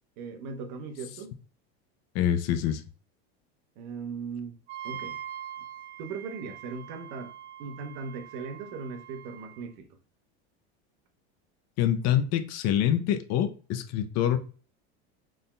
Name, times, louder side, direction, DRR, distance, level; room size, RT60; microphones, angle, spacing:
voice 1, 0.2-1.4 3.8-4.6 4.8-5.2 6.0-7.3 7.6-9.9, right 5 dB, 60° right, 1.0 m, -38 dB
voice 2, 2.1-2.8 11.8-14.4, left 10 dB, 50° left, 0.6 m, -25 dB
Wind instrument woodwind instrument, 4.7-9.6, right 10 dB, 90° right, 0.6 m, -43 dB
4.1 x 3.6 x 2.2 m
supercardioid pair, 120°, 33 cm